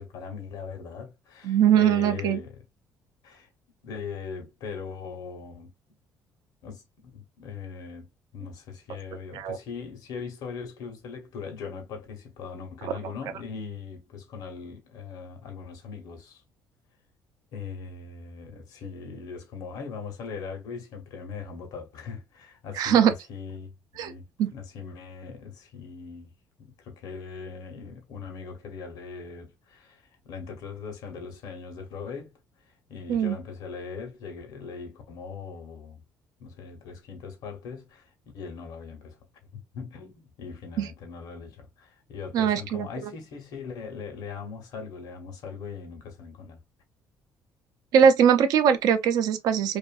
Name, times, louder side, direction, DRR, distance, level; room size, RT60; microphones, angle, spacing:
voice 1, 0.0-2.6 3.2-3.5 3.8-5.7 6.6-16.4 17.5-26.3 26.6-32.3 32.6-36.0 36.4-39.2 39.5-46.6, left 5 dB, 75° left, 0.9 m, -40 dB
voice 2, 1.4-2.4 9.3-9.6 12.8-12.9 22.8-23.1 24.0-24.1 24.4-24.5 33.1-33.3 40.8-40.9 42.3-43.1 47.9-49.8, right 8 dB, 75° right, 0.5 m, -21 dB
2.6 x 2.5 x 2.3 m
cardioid pair, 95°, 7 cm